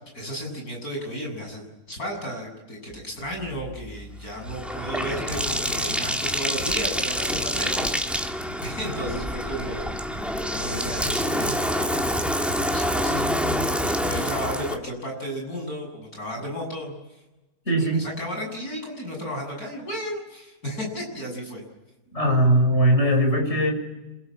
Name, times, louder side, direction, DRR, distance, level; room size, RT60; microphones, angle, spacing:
voice 1, 0.1-8.3 8.6-9.8 10.4-12.0 12.5-13.2 13.9-16.9 17.8-21.6, equal, 70° left, 2 dB, 8.3 m, -33 dB
Bathtub (filling or washing), 3.4-14.8, equal, ahead, 1.8 m, -27 dB
voice 2, 17.7-18.0 22.1-23.7, right 1 dB, 45° left, 3 dB, 7.0 m, -20 dB
27.0 x 22.5 x 8.8 m, 1.0 s
omnidirectional pair, 1.6 m